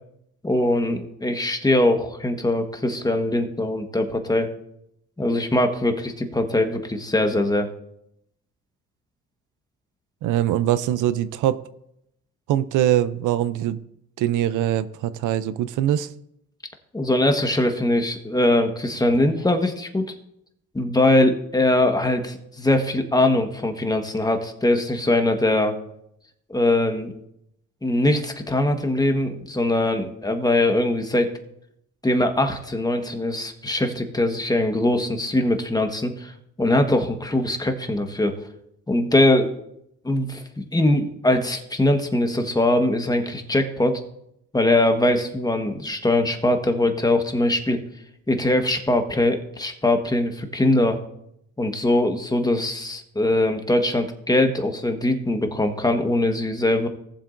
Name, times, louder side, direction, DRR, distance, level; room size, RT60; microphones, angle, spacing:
voice 1, 0.4-4.5 5.2-7.7 16.9-20.1 20.7-25.7 26.5-27.1 27.8-31.3 32.0-38.4 38.9-39.5 40.0-44.0 44.5-47.8 48.3-51.0 51.6-56.9, left 1 dB, 15° left, 1.3 m, -22 dB
voice 2, 10.2-11.6 12.5-13.8 14.2-16.1, right 12 dB, 85° right, 0.6 m, -22 dB
18.5 x 7.4 x 2.6 m
cardioid pair, 90°, 30 cm